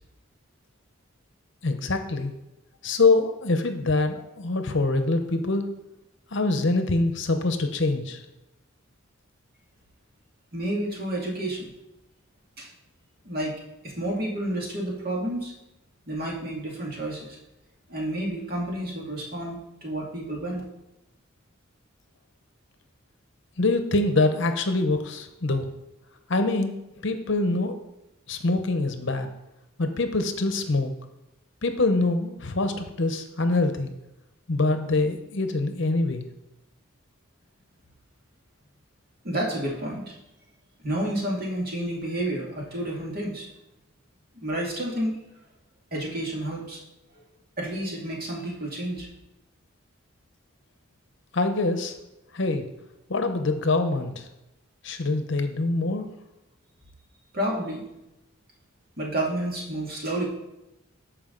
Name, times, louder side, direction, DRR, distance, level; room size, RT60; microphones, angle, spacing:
voice 1, 1.6-2.3 2.8-5.7 6.3-8.2 23.6-25.7 26.3-26.8 27.0-27.8 28.3-29.3 29.8-30.9 31.6-33.9 34.5-36.3 51.3-51.9 52.3-52.7 53.1-54.3 54.8-56.1, left 3 dB, 60° left, 7 dB, 0.8 m, -24 dB
voice 2, 10.5-11.7 12.6-12.7 13.2-13.5 13.8-15.5 16.1-17.4 17.9-20.6 39.2-40.1 40.8-43.5 44.4-45.2 45.9-46.8 47.2-47.3 47.6-49.1 57.3-57.9 59.0-60.3, right 1 dB, 45° right, -3 dB, 2.2 m, -30 dB
13.5 x 4.8 x 3.9 m, 0.92 s
head